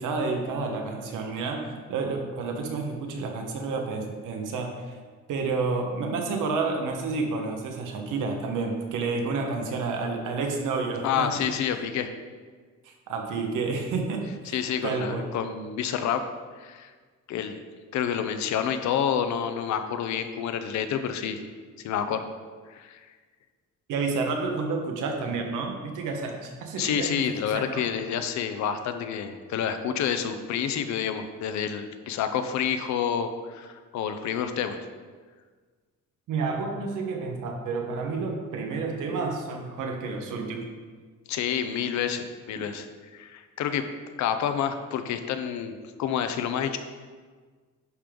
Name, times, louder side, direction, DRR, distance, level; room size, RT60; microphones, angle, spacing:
voice 1, 0.0-4.9 5.3-11.5 12.8-15.3 23.9-27.9 36.3-40.7 42.6-42.7, right 4 dB, 90° right, 3 dB, 1.3 m, -30 dB
voice 2, 11.0-12.1 14.5-16.2 16.6-16.9 17.3-17.6 17.9-21.4 21.8-22.3 22.7-23.1 26.8-34.8 41.3-42.9 43.1-43.9 44.2-46.8, left 8 dB, 65° left, 9 dB, 0.7 m, -28 dB
10.5 x 5.2 x 3.8 m, 1.5 s
cardioid pair, 175°, 30 cm